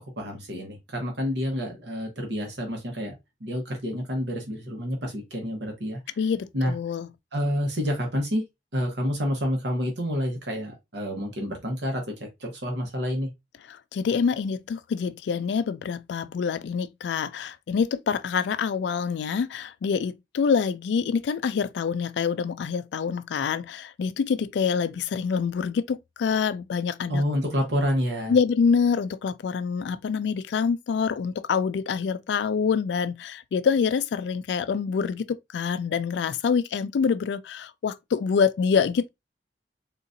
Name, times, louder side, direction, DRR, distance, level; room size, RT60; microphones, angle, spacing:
voice 1, 0.2-3.1 3.4-6.2 6.5-6.7 7.3-8.4 8.7-12.0 12.4-13.3 27.1-28.3, equal, 75° right, 1.1 m, -28 dB
voice 2, 6.2-7.1 13.7-27.2 28.3-39.1, left 6 dB, 75° left, 0.3 m, -26 dB
3.8 x 2.5 x 2.5 m
head